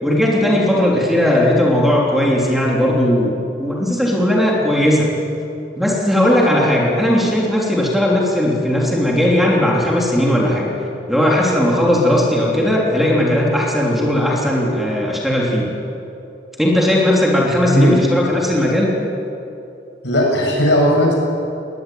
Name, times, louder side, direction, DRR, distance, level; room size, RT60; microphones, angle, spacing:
voice 1, 0.0-3.3 3.6-5.1 5.8-10.7 11.1-15.7 16.6-18.9, left 1 dB, ahead, -3 dB, 3.3 m, -17 dB
voice 2, 17.6-18.0 20.0-21.1, equal, 70° left, -1 dB, 7.5 m, -15 dB
21.0 x 19.5 x 9.4 m, 2.7 s
head